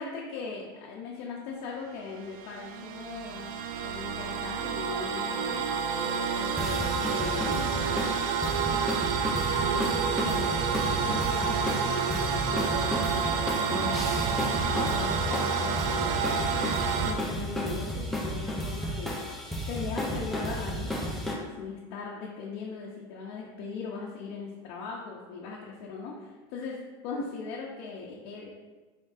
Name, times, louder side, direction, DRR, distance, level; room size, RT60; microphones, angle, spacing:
voice 1, 0.0-3.5 3.8-5.6 6.0-8.9 9.4-16.6 17.0-19.1 19.7-26.8 27.0-28.5, left 4 dB, 70° left, -3 dB, 0.7 m, -39 dB
sound 1, 1.9-17.1, right 6 dB, 65° right, 0.4 m, -29 dB
sound 2, 6.6-21.3, equal, ahead, 0.7 m, -33 dB
4.4 x 3.8 x 2.6 m, 1.3 s
supercardioid pair, 120°, 13 cm